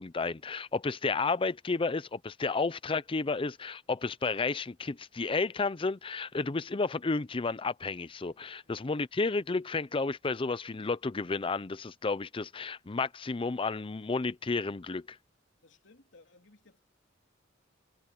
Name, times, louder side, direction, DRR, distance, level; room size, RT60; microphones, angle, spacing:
voice 1, 0.0-15.2, left 4 dB, 30° left, 0.5 m, -32 dB
voice 2, 15.6-16.8, left 3 dB, 70° left, 3.5 m, -60 dB
head